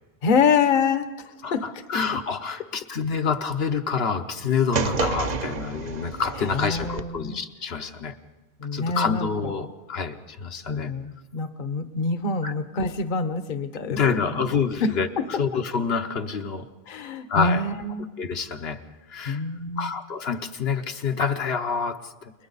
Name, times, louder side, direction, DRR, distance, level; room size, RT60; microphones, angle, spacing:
voice 1, 0.2-1.6 6.5-7.4 8.6-9.3 10.7-14.5 14.8-15.4 16.9-18.1 19.3-19.9, left 4 dB, 55° left, 10 dB, 1.0 m, -26 dB
voice 2, 1.4-8.2 8.7-10.9 12.4-12.5 13.9-16.7 17.3-17.6 18.2-18.8 19.1-19.4 19.8-22.3, left 5 dB, 75° left, 6 dB, 1.2 m, -27 dB
sound 1, 4.7-7.0, right 5 dB, 45° right, 0.8 m, -29 dB
30.0 x 21.5 x 4.1 m, 1.1 s
omnidirectional pair, 1.1 m